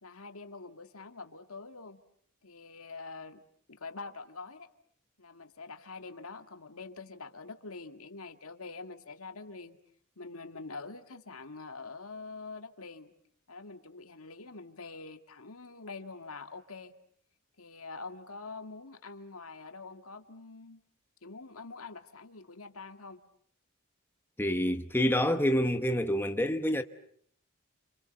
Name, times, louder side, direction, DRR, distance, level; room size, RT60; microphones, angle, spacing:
voice 1, 0.0-2.0 2.4-3.4 3.7-4.7 5.2-9.8 10.2-13.1 13.5-16.9 17.6-20.8 21.2-23.2, left 3 dB, 85° left, 2.1 m, -45 dB
voice 2, 24.4-26.8, equal, 10° left, 1.2 m, -27 dB
29.5 x 27.5 x 6.9 m
head